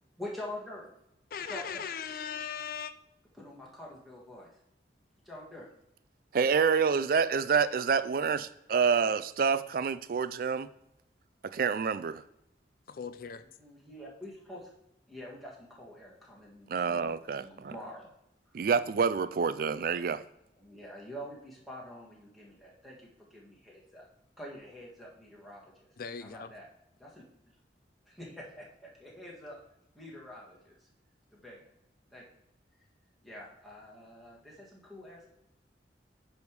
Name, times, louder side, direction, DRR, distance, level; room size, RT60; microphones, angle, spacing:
voice 1, 0.2-0.9 1.5-1.8 3.3-4.5 5.2-5.7 13.6-14.7 15.1-17.1 17.4-18.1 20.5-24.1 24.4-25.9 26.2-26.7 27.0-27.6 28.1-29.6 30.0-30.9 31.3-31.7 32.1-32.2 33.2-35.3, left 1 dB, ahead, 1.8 m, -46 dB
voice 2, 1.3-2.9 12.9-13.4 26.0-26.5, left 7 dB, 50° left, 0.4 m, -38 dB
voice 3, 6.3-10.7 11.4-12.2 16.7-17.7 18.5-20.2, right 6 dB, 50° right, 0.4 m, -28 dB
9.6 x 3.5 x 4.7 m
head